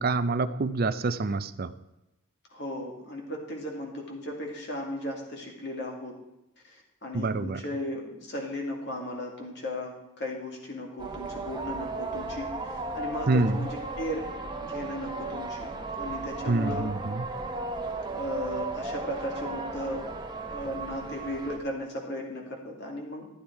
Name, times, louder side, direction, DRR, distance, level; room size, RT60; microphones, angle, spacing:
voice 1, 0.0-1.7 7.1-7.6 13.3-13.7 16.5-17.3, right 3 dB, 45° right, 13 dB, 0.5 m, -26 dB
voice 2, 2.5-6.1 6.6-14.3 14.6-16.9 18.1-20.0 20.3-23.3, left 1 dB, 55° left, 0 dB, 2.5 m, -36 dB
sound 1, 11.0-21.6, right 2 dB, 20° right, 1.0 m, -35 dB
13.0 x 8.8 x 4.6 m, 0.91 s
head